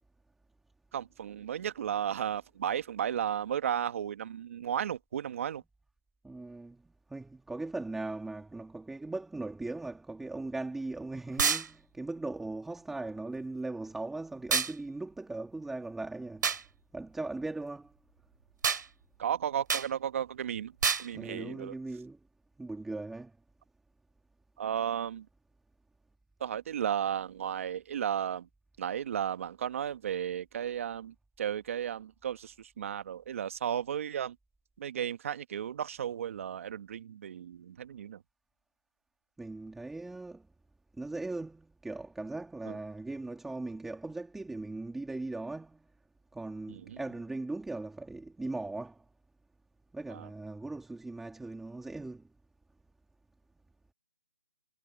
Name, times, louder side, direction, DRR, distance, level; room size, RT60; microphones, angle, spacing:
voice 1, 0.9-5.6 19.2-21.7 24.6-25.3 26.4-28.5 28.8-34.4 34.8-38.2 42.6-42.8 46.7-47.0 50.1-50.3, right 9 dB, 35° right, 1.6 m, -34 dB
voice 2, 6.2-6.8 7.1-16.5 16.9-17.9 21.1-22.2 22.6-23.3 39.4-40.5 40.9-45.9 46.3-49.0 49.9-52.3, right 2 dB, ahead, 2.1 m, -39 dB
sound 1, 11.4-11.7 14.5-14.7 16.4-16.6 18.6-18.8 19.7-19.9 20.8-21.1, right 6 dB, 55° right, 2.5 m, -27 dB
hypercardioid pair, 170°, 12 cm